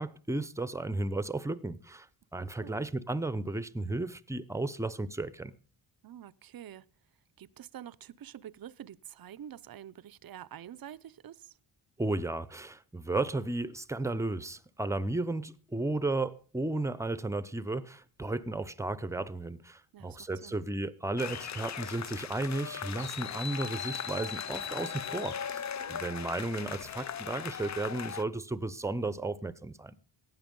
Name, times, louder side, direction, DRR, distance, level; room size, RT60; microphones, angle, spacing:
voice 1, 0.0-2.1 2.3-5.5 12.0-25.6 25.9-30.0, right 2 dB, 5° right, 0.8 m, -34 dB
voice 2, 6.0-6.8 7.4-11.6 19.9-20.6 25.8-26.1, right 10 dB, 45° right, 0.7 m, -47 dB
sound 1, 21.2-28.2, left 8 dB, 35° left, 0.5 m, -38 dB
15.5 x 9.6 x 5.3 m
cardioid pair, 90°, 49 cm